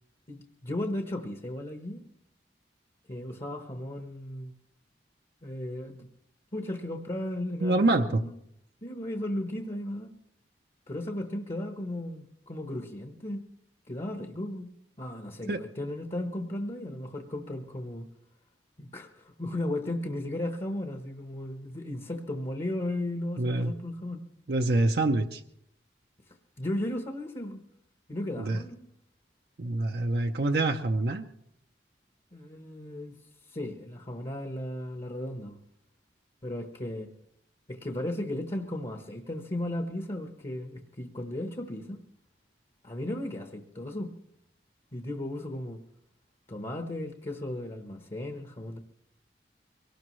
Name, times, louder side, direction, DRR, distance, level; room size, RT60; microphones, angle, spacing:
voice 1, 0.3-2.0 3.1-4.5 5.4-6.1 6.5-8.3 8.8-10.1 10.9-13.4 13.9-18.1 18.8-24.2 26.3-27.6 28.1-28.8 32.3-33.1 33.5-35.6 36.4-37.1 37.7-42.0 42.8-44.1 44.9-45.8 46.5-48.8, left 1 dB, 35° left, 5 dB, 1.0 m, -35 dB
voice 2, 7.6-8.2 15.5-15.6 23.4-23.7 24.5-25.4 28.4-28.6 29.6-31.2, right 2 dB, 60° right, 4 dB, 0.7 m, -26 dB
23.5 x 18.0 x 3.1 m, 0.74 s
head